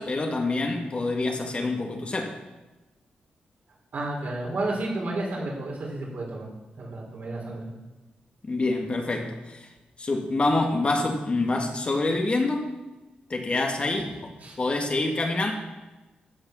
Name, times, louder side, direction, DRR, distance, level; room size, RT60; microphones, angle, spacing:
voice 1, 0.0-2.3 8.4-9.7 10.0-12.7 13.3-14.3 14.6-15.5, left 2 dB, 35° left, 3 dB, 1.7 m, -26 dB
voice 2, 3.9-6.5 6.8-7.7 14.4-14.6, right 2 dB, 60° right, -3 dB, 4.7 m, -31 dB
14.5 x 6.5 x 6.2 m, 1.1 s
cardioid pair, 85°, 3 cm